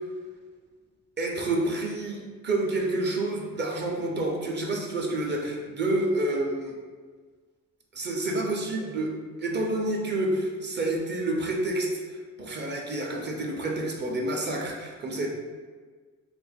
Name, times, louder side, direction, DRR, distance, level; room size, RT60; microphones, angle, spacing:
voice 1, 1.2-6.7 7.9-9.1 9.4-15.3, right 2 dB, 35° right, 0 dB, 0.7 m, -29 dB
2.6 x 2.5 x 4.0 m, 1.5 s
cardioid pair, 90°, 30 cm